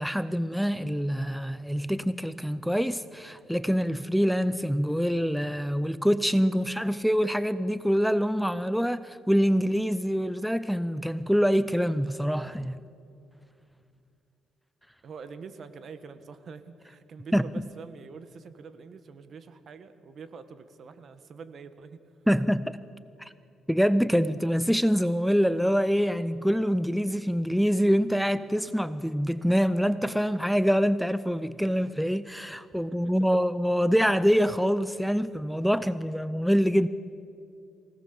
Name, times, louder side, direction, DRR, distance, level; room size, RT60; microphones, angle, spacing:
voice 1, 0.0-12.8 17.3-17.4 22.3-22.8 23.2-23.3 23.7-36.9, equal, ahead, 0.5 m, -25 dB
voice 2, 15.0-22.0 32.9-33.0, right 5 dB, 55° right, 1.4 m, -45 dB
24.0 x 18.0 x 7.1 m
cardioid pair, 90°, 0 cm